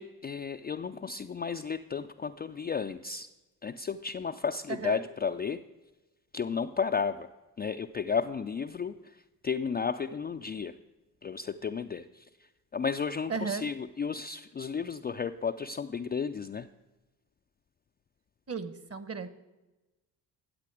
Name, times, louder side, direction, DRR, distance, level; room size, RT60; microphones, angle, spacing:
voice 1, 0.0-3.3 3.6-5.6 6.3-7.3 7.6-9.0 9.4-10.7 11.2-12.2 12.7-16.7, left 6 dB, 20° left, 6 dB, 0.4 m, -33 dB
voice 2, 4.7-5.0 13.3-13.7 18.5-19.3, right 5 dB, 30° right, 13 dB, 1.1 m, -35 dB
13.5 x 8.2 x 4.9 m, 1.1 s
hypercardioid pair, 45°, 47 cm